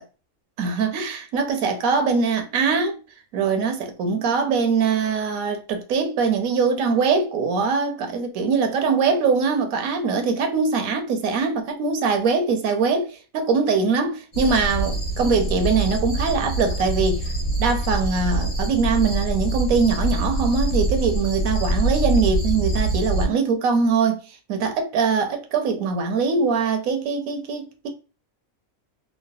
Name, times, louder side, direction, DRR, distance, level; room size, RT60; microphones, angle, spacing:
voice 1, 0.6-3.0 3.3-17.2 17.6-24.2 24.5-27.9, right 5 dB, 80° right, 1.0 m, -22 dB
sound 1, 14.3-23.3, right 1 dB, 30° left, 1.0 m, -24 dB
3.1 x 2.1 x 2.5 m
omnidirectional pair, 1.5 m